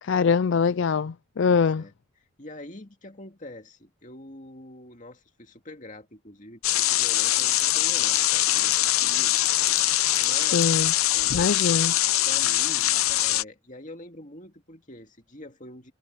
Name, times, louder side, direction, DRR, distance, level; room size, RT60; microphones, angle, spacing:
voice 1, 0.0-1.8 10.5-10.9 11.3-11.9, left 5 dB, 60° left, 0.4 m, -23 dB
voice 2, 1.4-1.9 2.4-9.4 9.8-11.4 12.2-15.9, left 1 dB, 35° left, 2.3 m, -45 dB
sound 1, 6.6-13.4, left 14 dB, 90° left, 0.8 m, -23 dB
head